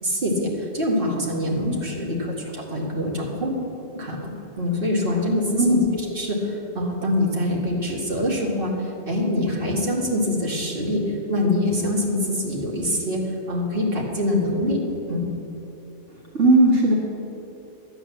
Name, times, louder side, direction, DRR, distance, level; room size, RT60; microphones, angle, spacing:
voice 1, 0.0-4.3 4.6-5.8 6.1-14.8 15.1-15.3, left 1 dB, 50° right, -3 dB, 2.4 m, -25 dB
voice 2, 5.6-5.9 16.1-16.9, right 1 dB, 80° right, -2 dB, 1.9 m, -18 dB
12.5 x 9.1 x 7.3 m, 2.9 s
omnidirectional pair, 1.2 m